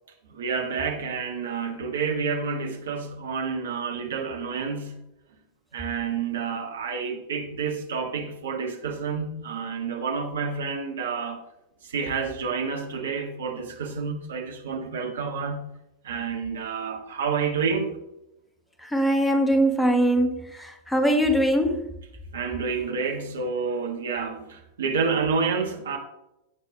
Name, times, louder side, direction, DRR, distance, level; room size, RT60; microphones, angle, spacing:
voice 1, 0.3-5.1 5.7-11.4 11.8-15.8 16.0-18.0 22.3-26.0, right 5 dB, 65° right, 3 dB, 1.9 m, -29 dB
voice 2, 18.8-21.9, equal, 5° left, 7 dB, 1.5 m, -22 dB
17.0 x 6.4 x 3.0 m, 0.86 s
figure-of-eight pair, 90°, 0 cm